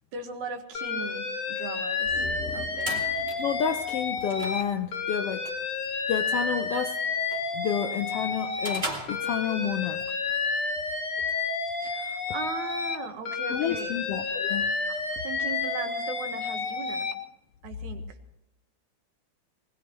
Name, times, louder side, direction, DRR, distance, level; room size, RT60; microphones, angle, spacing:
voice 1, 0.1-2.1 2.5-3.0 11.7-14.0 14.9-17.1 17.6-18.2, right 4 dB, 70° right, 6 dB, 2.8 m, -38 dB
Alarm, 0.7-4.6 4.9-8.8 9.1-13.0 13.2-17.1, left 4 dB, 50° left, 2.4 m, -30 dB
sound 1, 2.0-5.4 5.7-5.8, left 4 dB, 25° left, 2.6 m, -44 dB
sound 2, 2.4-9.9, right 2 dB, 20° right, 2.5 m, -41 dB
voice 2, 3.4-5.5 6.1-7.0 7.5-10.0 13.5-14.7, left 8 dB, 80° left, 7 dB, 1.3 m, -30 dB
21.0 x 20.0 x 3.1 m, 0.85 s
omnidirectional pair, 3.6 m